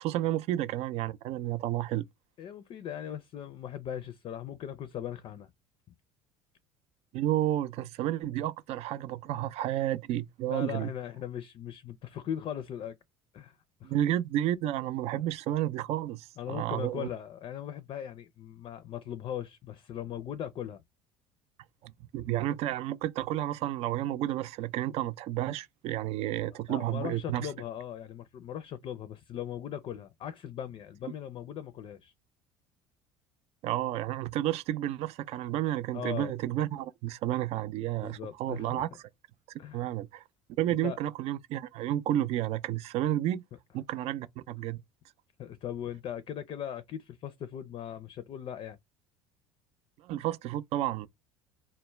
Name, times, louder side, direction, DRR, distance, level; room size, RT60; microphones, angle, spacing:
voice 1, 0.0-2.0 7.1-10.9 13.8-17.1 21.8-27.5 33.6-38.9 39.7-40.2 40.6-43.4 43.7-44.8 50.0-51.1, right 13 dB, 60° right, 0.4 m, -31 dB
voice 2, 2.4-5.5 10.5-13.0 13.3-13.6 13.8-14.0 16.4-20.8 26.7-32.1 35.9-36.3 38.0-38.8 39.6-39.9 40.6-41.0 45.4-48.8, left 10 dB, 50° left, 0.4 m, -39 dB
2.2 x 2.0 x 3.0 m
hypercardioid pair, 80°, 12 cm